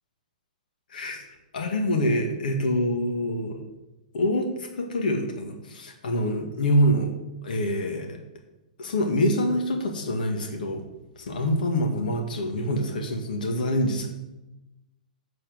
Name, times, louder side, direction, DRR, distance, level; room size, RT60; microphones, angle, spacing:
voice 1, 0.9-1.2 1.5-3.6 4.1-7.1 7.4-8.2 8.8-10.8 11.2-14.1, equal, 75° left, 3 dB, 1.9 m, -25 dB
7.5 x 7.2 x 7.7 m, 0.99 s
hypercardioid pair, 145°, 5 cm